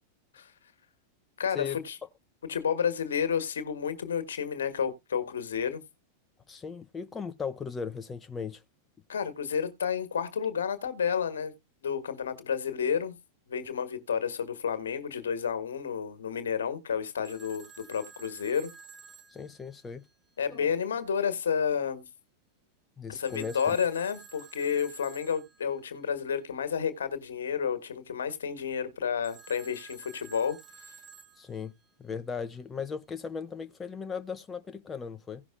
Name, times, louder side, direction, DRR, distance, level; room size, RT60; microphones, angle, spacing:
voice 1, 1.4-2.0 2.5-5.8 9.1-11.5 11.8-13.1 13.5-18.7 20.4-22.0 23.1-30.6, left 7 dB, 65° left, 1.5 m, -31 dB
voice 2, 6.5-8.6 19.3-20.0 20.5-20.7 23.0-23.6 31.4-31.7 32.0-35.4, left 6 dB, 20° left, 0.6 m, -37 dB
Telephone, 17.2-20.3 23.2-25.8 29.2-31.9, right 5 dB, 20° right, 1.5 m, -51 dB
17.0 x 6.0 x 2.5 m
figure-of-eight pair, 90°, 0 cm